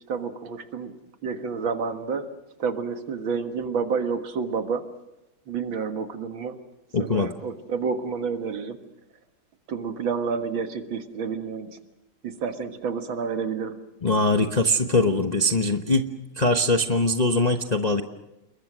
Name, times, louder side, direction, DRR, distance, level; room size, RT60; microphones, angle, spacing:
voice 1, 0.1-0.9 1.2-2.3 2.6-4.8 5.5-6.6 7.0-8.8 9.7-11.8 12.2-13.8, right 5 dB, 70° right, 7 dB, 2.4 m, -29 dB
voice 2, 6.9-7.3 14.0-16.1 16.4-18.0, left 2 dB, 30° left, 5 dB, 0.8 m, -22 dB
29.5 x 22.0 x 6.2 m, 0.95 s
omnidirectional pair, 2.2 m